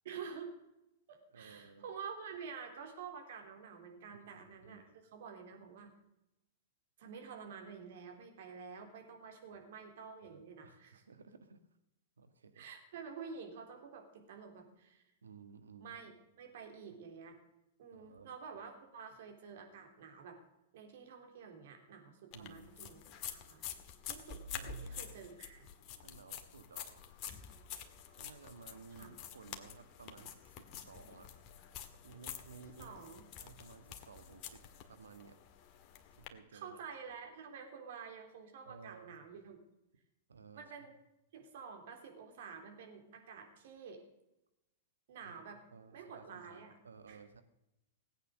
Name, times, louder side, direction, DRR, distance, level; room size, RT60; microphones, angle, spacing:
voice 1, 0.0-0.5 1.1-4.8 5.1-5.9 7.0-11.0 12.6-15.0 15.8-16.1 16.4-17.4 17.8-20.4 20.7-23.6 24.0-25.7 29.0-29.1 32.8-33.2 36.5-39.6 40.6-40.9 41.3-44.0 45.1-45.6 45.9-46.7 47.1-47.2, right 6 dB, 60° right, 3 dB, 3.5 m, -49 dB
voice 2, 1.3-1.8 4.1-5.0 9.5-9.6 10.2-11.6 12.2-12.7 15.2-16.0 17.9-18.3 22.3-22.7 24.5-25.2 26.0-27.0 28.1-31.4 32.0-32.9 33.4-34.6 34.9-35.4 36.2-36.8 38.6-39.2 40.3-40.7 45.2-47.4, right 5 dB, 80° right, 8 dB, 1.6 m, -56 dB
sound 1, 22.3-36.3, left 8 dB, 40° left, 1.8 m, -48 dB
18.0 x 9.1 x 6.5 m, 0.90 s
hypercardioid pair, 105°, 0 cm